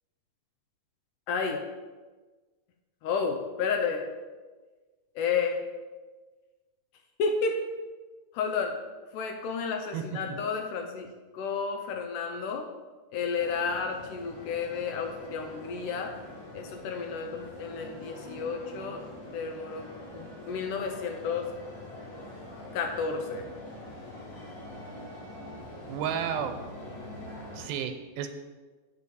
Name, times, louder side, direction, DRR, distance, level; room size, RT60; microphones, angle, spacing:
voice 1, 1.3-1.6 3.0-4.0 5.2-5.6 7.2-7.6 8.3-8.8 9.1-11.1 11.3-12.7 13.1-16.1 16.5-19.0 19.3-19.9 20.1-21.5 22.7-23.4, left 5 dB, 75° left, 4 dB, 2.0 m, -31 dB
sound 1, 13.4-27.7, left 1 dB, 35° left, 3.8 m, -44 dB
voice 2, 25.9-26.6 27.5-28.3, right 8 dB, 85° right, 7 dB, 2.6 m, -32 dB
8.3 x 5.1 x 7.0 m, 1.3 s
omnidirectional pair, 4.1 m